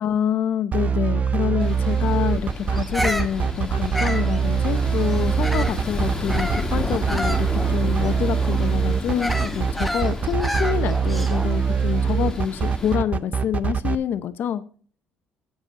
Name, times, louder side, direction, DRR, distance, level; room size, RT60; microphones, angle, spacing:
voice 1, 0.0-14.6, left 9 dB, 60° left, 0.6 m, -26 dB
sound 1, 0.7-14.0, right 6 dB, 40° right, 0.5 m, -23 dB
sound 2, 1.6-13.0, left 2 dB, 15° left, 1.5 m, -32 dB
Bird vocalization bird call bird song, 2.7-5.9 6.3-11.6, equal, ahead, 0.8 m, -31 dB
7.5 x 6.2 x 5.3 m
cardioid pair, 90°, 4 cm